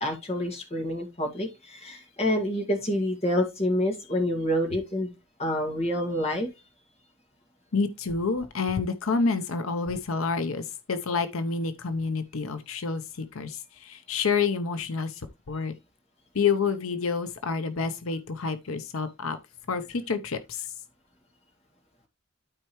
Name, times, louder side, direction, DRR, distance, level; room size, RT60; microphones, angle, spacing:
voice 1, 0.0-5.1 5.4-6.5, left 1 dB, 30° left, 2.1 m, -27 dB
voice 2, 7.7-15.7 16.3-19.4 19.7-20.7, left 5 dB, 80° left, 0.7 m, -28 dB
12.5 x 4.5 x 3.1 m
head